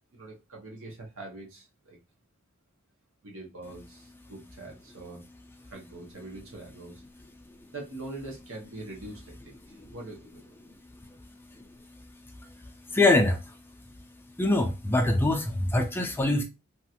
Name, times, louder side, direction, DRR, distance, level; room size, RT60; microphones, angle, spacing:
voice 1, 0.1-2.0 3.2-5.2 5.6-7.0 7.7-10.4, right 2 dB, 70° right, 1.1 m, -43 dB
voice 2, 12.9-13.5 14.4-16.4, left 2 dB, 10° left, 0.4 m, -23 dB
3.0 x 2.4 x 2.8 m
head